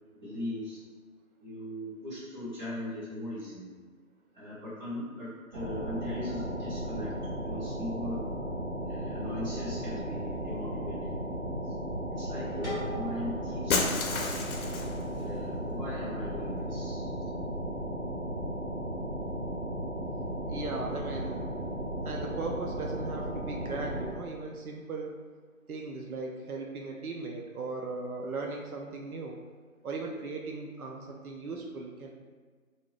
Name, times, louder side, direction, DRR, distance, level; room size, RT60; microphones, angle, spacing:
voice 1, 0.2-0.8 1.4-3.7 4.3-7.1 7.4-8.2 8.9-11.2 12.2-14.3 15.2-17.1, left 1 dB, 30° right, -10 dB, 1.3 m, -39 dB
sound 1, 5.5-24.1, right 1 dB, 50° right, 0.7 m, -35 dB
sound 2, 12.6-15.5, equal, ahead, 0.9 m, -42 dB
Shatter, 13.7-15.0, left 4 dB, 75° left, 0.6 m, -30 dB
voice 2, 20.5-21.4 22.0-25.1 25.7-29.4 29.8-32.1, right 3 dB, 85° right, 0 dB, 0.6 m, -38 dB
2.6 x 2.3 x 3.2 m, 1.5 s
figure-of-eight pair, 160°, 42 cm